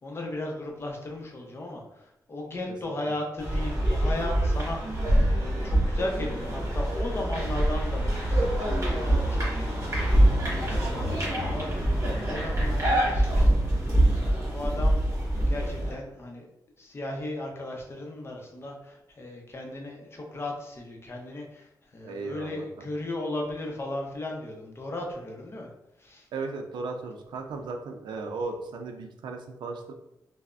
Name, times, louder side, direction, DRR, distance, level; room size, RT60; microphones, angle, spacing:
voice 1, 0.0-15.0 15.5-16.5 16.8-25.7 26.0-26.3, left 1 dB, 35° left, 0 dB, 0.6 m, -36 dB
sound 1, 3.4-15.9, right 1 dB, 40° right, 1.1 m, -25 dB
voice 2, 22.0-22.9 26.3-29.9, right 3 dB, 90° right, 4 dB, 0.4 m, -36 dB
3.2 x 2.0 x 2.4 m, 0.84 s
cardioid pair, 100°, 8 cm